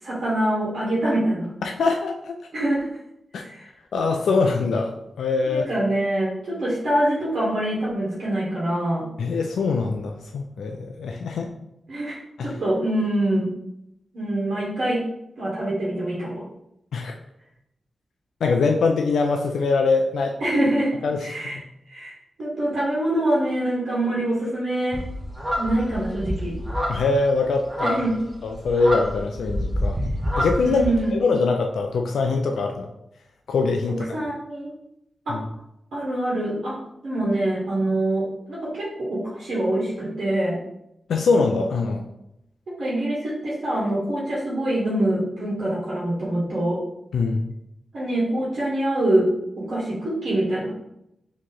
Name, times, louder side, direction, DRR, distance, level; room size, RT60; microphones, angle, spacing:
voice 1, 0.0-1.5 2.5-2.9 3.4-3.7 5.5-9.0 11.9-13.5 14.1-15.0 15.4-16.4 20.4-20.9 21.2-21.6 21.9-22.1 22.4-25.0 25.6-26.6 27.8-28.2 30.6-31.2 33.9-34.7 35.3-35.4 35.9-36.8 37.0-40.6 42.8-46.8 47.9-49.3 49.5-50.7, right 1 dB, 75° right, -7 dB, 1.4 m, -24 dB
voice 2, 1.6-2.3 3.3-3.4 3.9-5.7 9.2-11.5 12.4-12.5 16.9-17.1 18.4-20.4 21.0-21.6 26.9-28.0 28.4-30.0 30.4-30.8 31.1-32.9 33.5-34.1 35.3-35.5 41.1-42.0 47.1-47.5, left 4 dB, 85° left, 3 dB, 0.3 m, -23 dB
sound 1, 24.9-31.0, equal, 20° right, 1.0 m, -28 dB
3.1 x 2.7 x 3.8 m, 0.81 s
cardioid pair, 45°, 0 cm